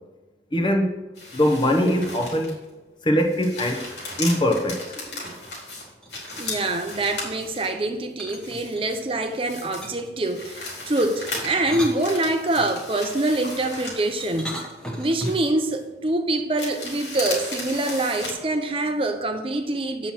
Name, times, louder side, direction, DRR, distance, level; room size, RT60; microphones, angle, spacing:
voice 1, 0.5-0.9 1.3-2.6 3.0-3.9 4.2-5.2, equal, 25° left, 1.0 m, -22 dB
sound 1, 1.2-2.7 3.1-7.8 8.3-9.9 10.2-14.9 15.2-15.8 16.6-18.3, left 2 dB, 85° left, 3.2 m, -36 dB
sound 2, 6.0-6.7 8.2-9.1 9.8-10.2 11.3-12.7 14.2-15.5, equal, 5° left, 1.1 m, -35 dB
voice 2, 6.4-14.6 15.0-20.1, right 2 dB, 30° right, 0.6 m, -25 dB
7.7 x 5.8 x 6.1 m
head